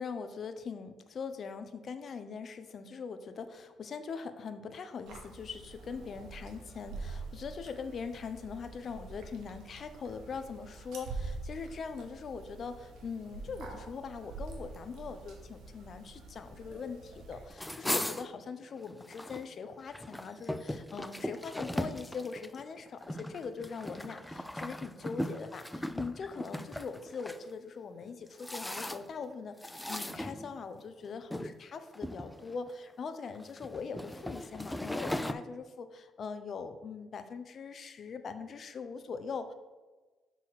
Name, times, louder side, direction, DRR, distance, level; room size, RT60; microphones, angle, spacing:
voice 1, 0.0-39.5, left 5 dB, 50° left, 9 dB, 0.6 m, -41 dB
sound 1, 5.1-17.5, right 3 dB, 80° right, 1.5 m, -45 dB
sound 2, 17.5-19.5 19.8-27.4 28.0-29.2 29.6-30.8 31.3-31.5 31.9-32.7 33.4-35.3, left 1 dB, 5° left, 0.4 m, -38 dB
6.4 x 4.1 x 5.7 m, 1.2 s
cardioid pair, 90°, 0 cm